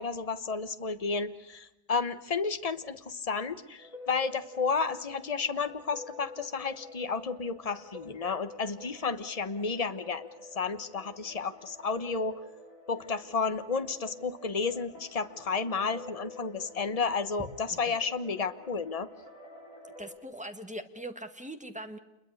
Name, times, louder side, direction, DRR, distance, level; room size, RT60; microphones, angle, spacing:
voice 1, 0.0-12.4 12.9-19.1, left 5 dB, 30° left, 11 dB, 1.2 m, -32 dB
sound 1, 3.8-20.2, left 2 dB, 80° left, 7.0 m, -49 dB
voice 2, 20.0-22.0, right 1 dB, 5° right, 6 dB, 1.7 m, -41 dB
28.0 x 22.0 x 6.5 m, 0.95 s
omnidirectional pair, 1.4 m